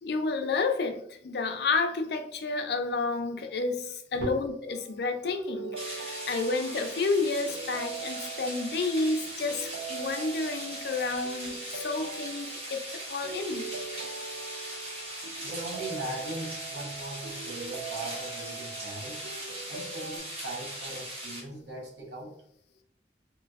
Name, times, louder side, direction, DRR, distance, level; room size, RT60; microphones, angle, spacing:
voice 1, 0.0-12.8 13.1-13.7, left 3 dB, 65° left, 0.4 m, -30 dB
sound 1, 4.7-20.2, right 5 dB, 70° right, 0.3 m, -42 dB
sound 2, 5.7-21.4, right 1 dB, 35° right, 1.0 m, -40 dB
voice 2, 15.4-19.2 19.7-22.3, right 1 dB, 85° right, 1.0 m, -39 dB
3.2 x 3.0 x 2.4 m
head